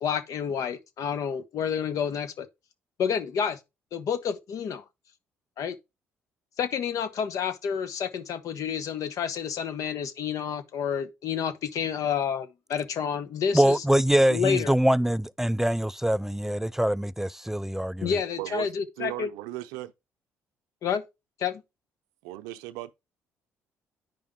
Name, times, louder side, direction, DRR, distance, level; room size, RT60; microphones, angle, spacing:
voice 1, 0.0-2.5 3.0-3.6 3.9-4.8 5.6-5.8 6.6-13.8 14.3-14.7 18.0-19.3 20.8-21.0 21.4-21.6, left 7 dB, 65° left, 1.0 m, -29 dB
voice 2, 13.5-18.1, right 1 dB, 5° right, 0.3 m, -24 dB
voice 3, 19.0-19.9 22.2-22.9, right 17 dB, 90° right, 0.6 m, -36 dB
9.2 x 5.1 x 3.7 m
supercardioid pair, 65°, 6 cm